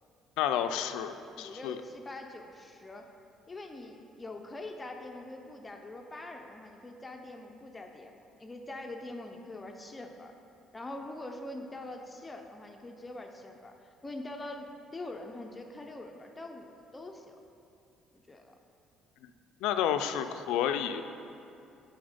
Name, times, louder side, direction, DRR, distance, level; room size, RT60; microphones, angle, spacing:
voice 1, 0.4-1.8 19.6-21.0, left 9 dB, 85° left, 9 dB, 0.3 m, -30 dB
voice 2, 1.3-3.1 3.5-10.3 10.7-17.4 18.1-18.6, left 2 dB, 20° left, 3 dB, 0.5 m, -44 dB
7.9 x 4.0 x 5.0 m, 2.7 s
cardioid pair, 90°, 0 cm